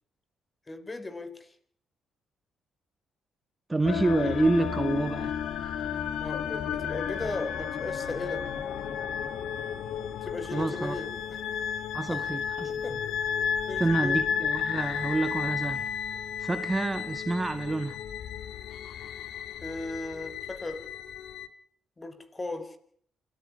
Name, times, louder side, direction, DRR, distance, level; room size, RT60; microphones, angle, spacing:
voice 1, 0.7-1.5 6.2-8.5 10.2-11.4 12.1-12.2 12.6-13.0 13.7-14.2 19.6-20.9 22.0-22.8, left 2 dB, 25° left, 4.2 m, -37 dB
voice 2, 3.7-5.4 10.5-11.0 11.9-13.0 13.8-15.9 16.4-18.0, right 2 dB, 20° right, 1.8 m, -28 dB
sound 1, 3.8-21.5, left 8 dB, 70° left, 2.0 m, -33 dB
27.5 x 14.5 x 9.9 m
supercardioid pair, 65°, 0 cm